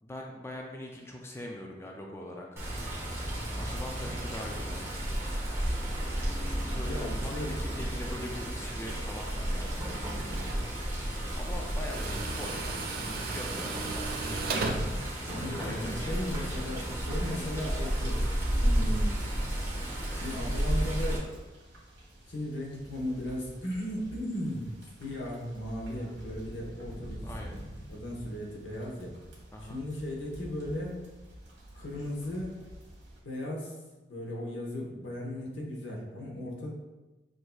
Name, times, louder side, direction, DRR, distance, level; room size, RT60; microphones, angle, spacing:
voice 1, 0.0-2.6 3.6-4.9 6.4-9.9 11.4-12.7 13.1-14.5 15.3-16.9 27.2-27.6 29.5-29.8, left 1 dB, 15° left, 0 dB, 0.3 m, -42 dB
Water, 2.6-21.2, right 1 dB, 15° right, 1.0 m, -32 dB
voice 2, 6.9-7.5 14.6-18.3 18.6-19.2 20.2-21.3 22.3-27.3 27.9-29.1 29.7-31.0 31.7-32.6 33.2-33.7 34.1-36.7, left 1 dB, 85° left, -2 dB, 1.0 m, -36 dB
Tools, 9.7-15.9, right 3 dB, 55° right, 0.4 m, -37 dB
sound 1, 16.2-33.2, equal, 85° right, 1.2 m, -48 dB
6.1 x 2.7 x 2.3 m, 1.1 s
head